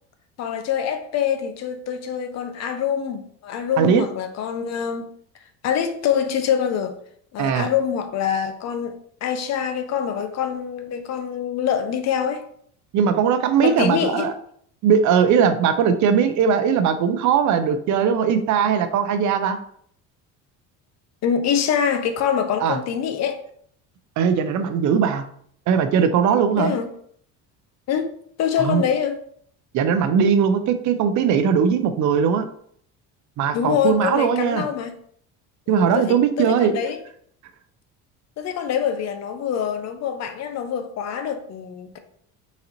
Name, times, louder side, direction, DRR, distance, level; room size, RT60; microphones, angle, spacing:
voice 1, 0.4-5.0 5.6-6.9 7.3-12.4 13.6-14.3 21.2-23.4 26.6-26.9 27.9-28.1 28.4-29.2 33.5-34.9 35.7-37.0 38.4-42.0, left 8 dB, 50° left, 0.6 m, -25 dB
voice 2, 7.4-7.7 12.9-14.3 14.8-19.6 22.6-22.8 24.2-25.2 25.7-26.8 28.6-28.8 29.7-32.5 33.4-34.7 35.7-36.7, right 7 dB, 55° right, 0.6 m, -19 dB
4.1 x 3.9 x 2.9 m
cardioid pair, 115°, 35 cm